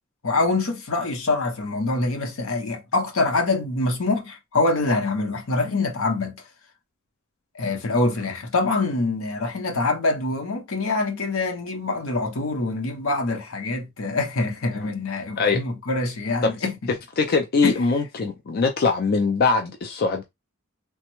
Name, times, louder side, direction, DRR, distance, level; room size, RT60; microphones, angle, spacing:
voice 1, 0.2-6.4 7.5-16.9 17.6-17.8, left 3 dB, 80° left, 0.8 m, -25 dB
voice 2, 17.2-20.2, left 4 dB, 45° left, 0.4 m, -22 dB
3.3 x 2.0 x 2.9 m
head